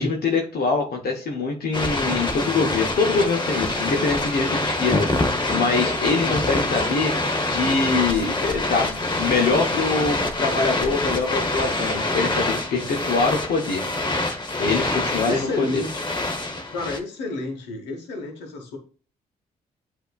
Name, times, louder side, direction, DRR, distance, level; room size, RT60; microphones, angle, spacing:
voice 1, 0.0-5.1 5.5-7.1 7.5-13.9 14.6-15.8, left 4 dB, 60° left, 0 dB, 1.0 m, -24 dB
sound 1, 1.7-17.0, left 2 dB, 25° left, 1.0 m, -25 dB
voice 2, 15.2-16.0 16.7-18.8, left 2 dB, 85° left, 4 dB, 1.0 m, -30 dB
7.9 x 2.8 x 2.3 m, 0.39 s
supercardioid pair, 50°, 18 cm